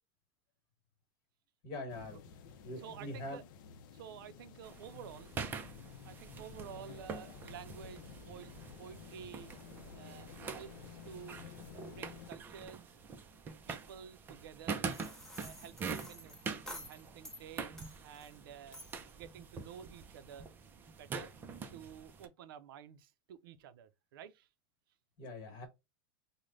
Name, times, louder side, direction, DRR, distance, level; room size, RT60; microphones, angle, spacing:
voice 1, 1.6-2.2 2.6-3.4 25.2-25.7, left 2 dB, 40° left, 1.3 m, -43 dB
sound 1, 1.9-12.3, left 7 dB, 70° left, 0.5 m, -53 dB
voice 2, 2.8-3.4 3.9-5.3 6.0-9.5 9.9-11.4 11.7-12.9 13.7-14.8 15.4-18.8 19.2-20.5 21.0-21.3 21.7-24.5, right 8 dB, 90° right, 0.4 m, -51 dB
sound 2, 4.6-22.3, right 5 dB, 15° right, 0.3 m, -45 dB
sound 3, 14.9-17.4 17.8-18.4 18.7-19.1, equal, 5° left, 0.7 m, -50 dB
3.2 x 2.1 x 3.7 m
supercardioid pair, 160°, 11 cm